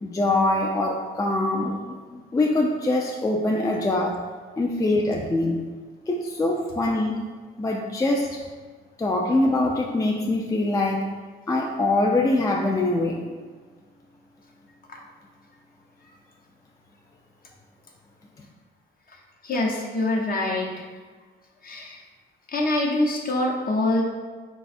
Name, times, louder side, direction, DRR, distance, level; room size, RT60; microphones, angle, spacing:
voice 1, 0.0-4.2 4.6-5.6 6.1-7.1 7.6-8.4 9.0-11.1 11.5-13.2, left 2 dB, 15° left, 0 dB, 0.4 m, -23 dB
voice 2, 19.4-20.9 21.6-22.0 22.5-24.0, left 2 dB, 45° left, -1 dB, 0.8 m, -25 dB
4.1 x 2.3 x 4.1 m, 1.5 s
cardioid pair, 90°, 20 cm